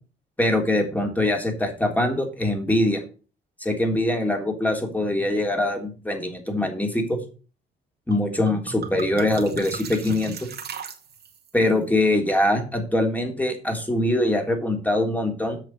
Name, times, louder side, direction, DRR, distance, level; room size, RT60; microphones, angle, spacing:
voice 1, 0.4-3.0 3.6-7.2 8.1-10.5 11.5-15.6, left 1 dB, 10° left, 3 dB, 3.5 m, -23 dB
sound 1, 8.1-8.2 8.5-11.5, right 6 dB, 55° right, 2.1 m, -36 dB
8.0 x 6.6 x 6.4 m, 0.35 s
cardioid pair, 90°, 20 cm